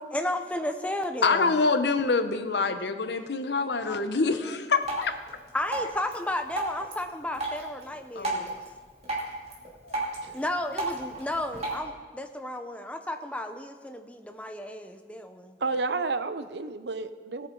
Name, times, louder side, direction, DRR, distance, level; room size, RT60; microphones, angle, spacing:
voice 1, 0.1-1.6 3.8-4.0 5.5-8.6 10.3-15.6, left 1 dB, 5° left, 6 dB, 0.7 m, -33 dB
voice 2, 1.2-5.1 8.2-8.5 9.8-10.0, left 4 dB, 70° left, 9 dB, 0.8 m, -26 dB
Drip, 4.8-11.8, right 2 dB, 35° right, 2.6 m, -35 dB
voice 3, 15.6-17.5, right 3 dB, 75° right, 11 dB, 0.7 m, -31 dB
18.0 x 9.1 x 3.9 m, 1.5 s
head